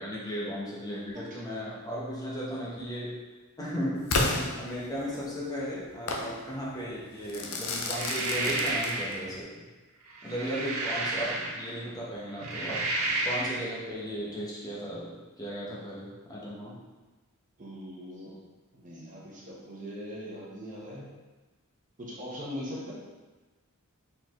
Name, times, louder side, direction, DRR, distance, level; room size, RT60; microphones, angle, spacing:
voice 1, 0.0-3.2 3.6-4.3 4.6-9.7 10.2-12.8 13.2-16.8, equal, 15° left, -6 dB, 0.8 m, -36 dB
Crackle / Fireworks, 4.1-5.3 6.1-6.3 7.3-9.3, left 2 dB, 70° left, 0.6 m, -31 dB
sound 1, 7.8-9.2 10.1-11.8 12.3-13.7, right 2 dB, 70° right, 0.7 m, -31 dB
voice 2, 17.6-18.4 18.7-21.1 22.0-22.9, equal, 35° right, -4 dB, 1.0 m, -40 dB
4.4 x 4.0 x 3.0 m, 1.2 s
head